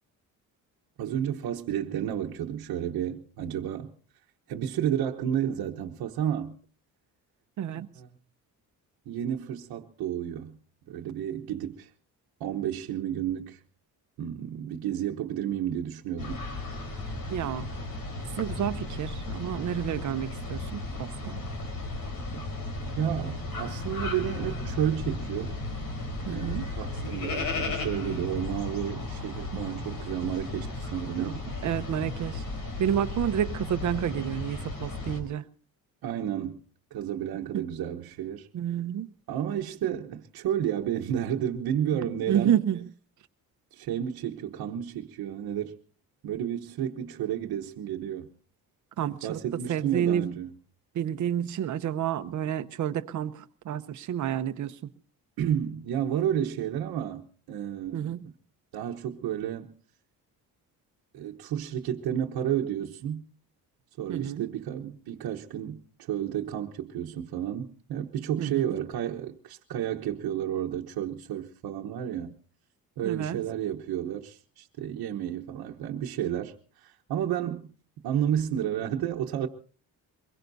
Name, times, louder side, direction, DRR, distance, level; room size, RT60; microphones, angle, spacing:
voice 1, 1.0-3.9 4.5-6.6 8.0-8.1 9.1-10.6 10.9-11.9 12.4-13.6 14.2-16.4 23.0-25.5 26.3-31.4 36.0-36.6 36.9-38.5 39.3-42.5 43.7-45.8 46.2-48.3 49.2-50.5 55.4-58.1 58.7-59.7 61.1-63.3 64.0-72.4 73.0-77.7 78.0-79.5, right 10 dB, 80° right, 1.1 m, -31 dB
voice 2, 7.6-7.9 17.3-17.7 18.4-21.4 26.3-26.7 29.5-29.7 31.2-32.4 32.8-35.5 37.5-37.7 38.5-39.1 41.9-42.0 42.3-42.9 49.0-49.4 49.7-50.3 50.9-54.9 57.9-58.2 64.1-64.5 68.4-68.7 73.0-73.4, right 10 dB, 55° right, 0.9 m, -30 dB
sound 1, 16.2-35.2, left 2 dB, 70° left, 4.2 m, -35 dB
24.0 x 21.5 x 2.7 m
cardioid pair, 165°, 36 cm